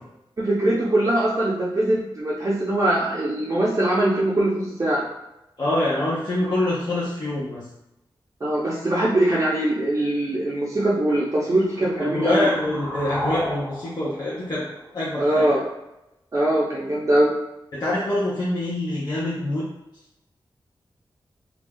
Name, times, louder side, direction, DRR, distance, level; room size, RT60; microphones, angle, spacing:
voice 1, 0.4-5.0 8.4-12.5 15.2-15.6 16.3-17.3, right 1 dB, 35° right, -6 dB, 0.5 m, -22 dB
voice 2, 5.6-7.6 11.8-14.6 14.9-15.4 17.7-19.6, left 1 dB, 50° left, -9 dB, 0.7 m, -25 dB
sound 1, 11.6-15.5, equal, 30° left, 1.2 m, -34 dB
2.6 x 2.2 x 3.4 m, 0.90 s
wide cardioid pair, 85°, 9 cm